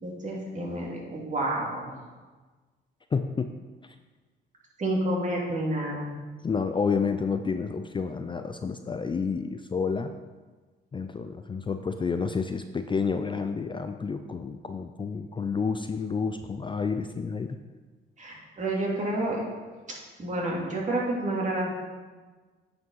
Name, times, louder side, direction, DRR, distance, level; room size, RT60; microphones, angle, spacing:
voice 1, 0.0-2.0 4.8-6.2 18.2-19.4 20.2-21.7, right 1 dB, 40° right, -3 dB, 2.7 m, -29 dB
voice 2, 3.1-3.6 3.8-4.0 6.4-10.1 10.9-17.6, left 5 dB, 25° left, 8 dB, 0.4 m, -30 dB
9.0 x 5.1 x 5.5 m, 1.3 s
cardioid pair, 90°, 20 cm